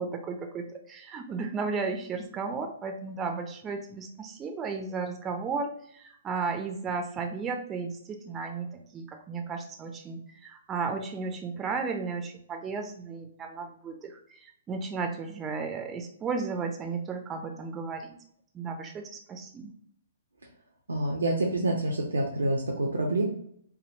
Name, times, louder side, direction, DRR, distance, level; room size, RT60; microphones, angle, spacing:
voice 1, 0.0-18.2 18.5-19.8, right 4 dB, 20° right, 4 dB, 0.4 m, -34 dB
voice 2, 20.9-23.2, right 1 dB, 80° right, 0 dB, 0.5 m, -27 dB
3.4 x 2.2 x 2.6 m, 0.68 s
figure-of-eight pair, 120°, 0 cm